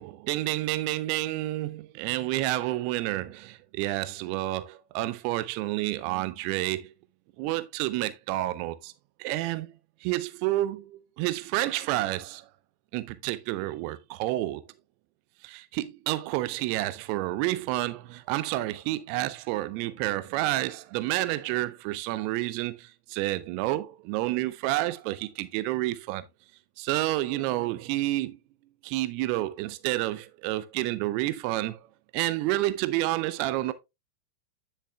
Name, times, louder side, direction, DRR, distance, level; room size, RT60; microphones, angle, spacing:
voice 1, 0.0-6.9 7.4-8.9 9.2-9.7 10.0-12.5 12.9-14.6 15.4-26.2 26.8-28.4 28.8-31.8 32.1-33.7, right 16 dB, 45° right, 0.5 m, -29 dB
9.9 x 6.6 x 2.3 m
figure-of-eight pair, 90°, 0 cm